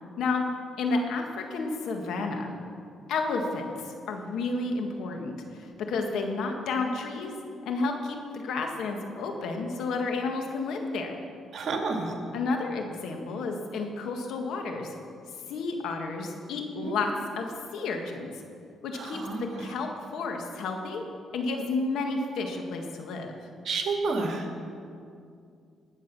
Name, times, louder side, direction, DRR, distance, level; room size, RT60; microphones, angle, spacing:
voice 1, 0.8-2.5 3.1-7.3 7.7-11.2 12.3-14.9 15.5-17.1 17.4-18.3 18.8-21.0 21.3-23.3, left 3 dB, 80° left, 3 dB, 1.8 m, -31 dB
voice 2, 11.5-12.1 16.8-16.9 18.9-19.5 23.6-24.5, right 3 dB, 60° right, 2 dB, 2.3 m, -30 dB
19.0 x 7.5 x 6.1 m, 2.4 s
cardioid pair, 90°, 0 cm